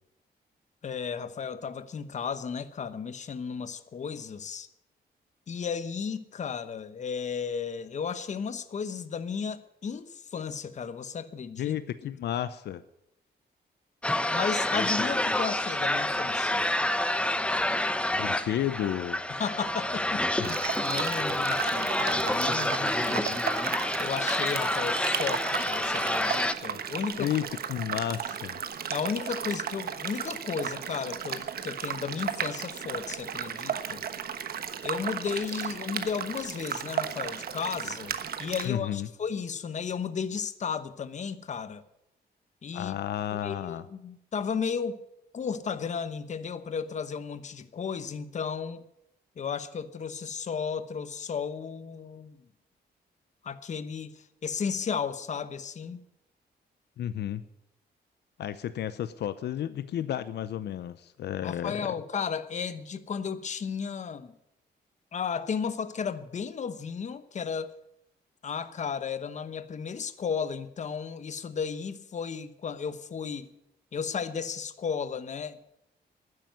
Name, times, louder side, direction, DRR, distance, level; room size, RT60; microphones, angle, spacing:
voice 1, 0.8-4.7 5.5-11.8 14.3-16.6 19.4-20.2 20.8-23.4 23.7-27.3 28.9-34.0 34.8-41.8 42.6-43.0 43.4-45.0 45.3-48.8 49.4-52.4 53.4-56.0 61.4-64.3 65.1-67.7 68.4-73.5 73.9-75.6, left 6 dB, 45° left, 1.0 m, -34 dB
voice 2, 11.6-12.8 18.1-19.2 20.4-20.6 27.2-28.6 38.6-39.1 42.7-43.9 57.0-57.4 58.4-61.9, left 11 dB, 80° left, 0.7 m, -32 dB
sound 1, 14.0-26.5, left 1 dB, 5° left, 0.7 m, -28 dB
sound 2, 20.4-38.7, right 8 dB, 65° right, 1.2 m, -35 dB
12.0 x 9.9 x 9.2 m
cardioid pair, 130°, 17 cm